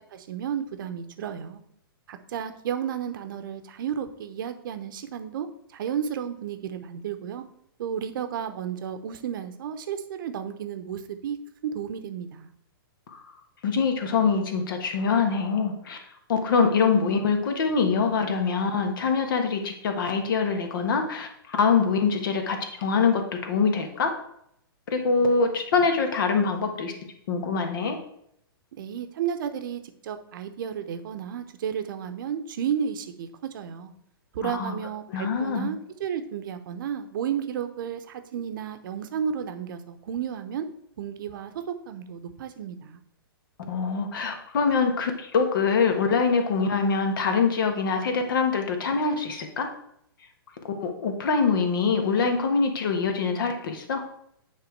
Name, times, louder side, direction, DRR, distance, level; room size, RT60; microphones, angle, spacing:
voice 1, 0.1-1.6 2.1-5.5 5.7-7.4 7.8-11.4 11.6-12.5 28.8-33.3 33.5-33.9 34.3-40.7 41.0-43.0, right 8 dB, 60° right, 9 dB, 0.9 m, -32 dB
voice 2, 13.6-16.0 16.3-24.1 24.9-26.9 27.3-28.0 34.4-34.7 35.1-35.7 43.7-49.7 50.8-54.0, left 5 dB, 60° left, 5 dB, 1.5 m, -24 dB
9.0 x 3.5 x 4.6 m, 0.73 s
hypercardioid pair, 120°, 13 cm